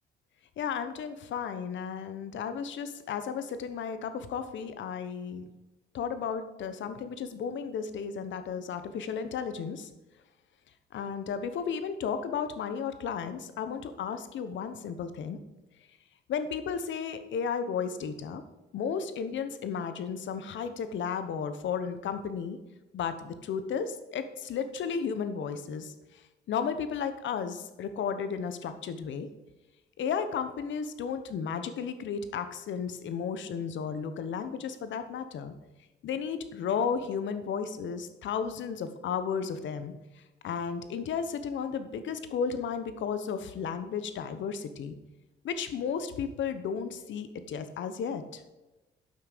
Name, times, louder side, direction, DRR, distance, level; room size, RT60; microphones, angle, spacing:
voice 1, 0.6-5.5 5.9-9.9 10.9-15.4 16.3-18.4 18.7-22.6 22.9-25.9 26.5-29.3 30.0-35.5 36.0-39.9 40.4-44.9 45.4-48.4, left 6 dB, 70° left, 10 dB, 1.0 m, -33 dB
8.8 x 6.0 x 6.6 m, 1.1 s
cardioid pair, 90°, 20 cm